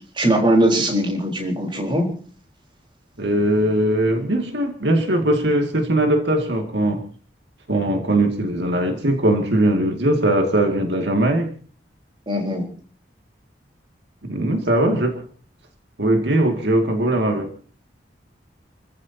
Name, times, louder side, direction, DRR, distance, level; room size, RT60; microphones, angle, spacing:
voice 1, 0.1-2.1 12.3-12.6, right 1 dB, 30° right, 1 dB, 4.2 m, -20 dB
voice 2, 3.2-7.0 7.7-11.5 14.2-15.2 16.0-17.5, right 1 dB, 75° right, 4 dB, 2.4 m, -20 dB
29.5 x 15.0 x 2.9 m, 0.42 s
head